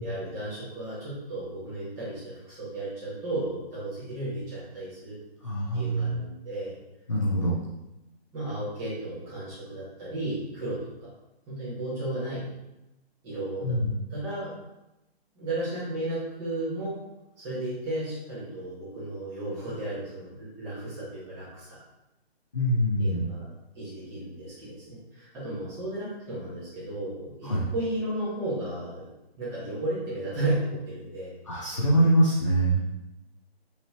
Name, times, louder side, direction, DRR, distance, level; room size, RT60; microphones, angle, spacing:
voice 1, 0.0-5.2 5.7-6.8 8.3-11.1 11.5-12.4 13.2-13.8 14.1-14.5 15.3-17.0 17.4-21.8 23.0-23.5 23.7-29.1 29.4-31.3, right 1 dB, 10° right, -11 dB, 1.3 m, -34 dB
voice 2, 5.4-6.2 7.1-7.6 13.6-14.0 22.5-23.3 27.4-27.7 31.5-32.9, right 1 dB, 30° left, -6 dB, 0.4 m, -24 dB
5.4 x 3.1 x 2.8 m, 0.95 s
hypercardioid pair, 165°, 32 cm